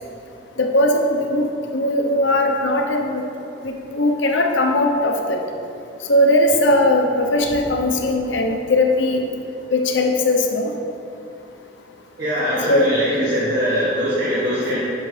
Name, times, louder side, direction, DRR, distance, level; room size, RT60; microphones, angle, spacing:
voice 1, 0.6-1.5 1.7-3.2 3.6-5.4 6.1-9.2 9.7-10.7 12.7-12.9, left 1 dB, 80° left, 3 dB, 0.8 m, -19 dB
voice 2, 12.2-14.8, equal, 60° right, -10 dB, 1.8 m, -21 dB
10.0 x 6.2 x 3.3 m, 2.7 s
head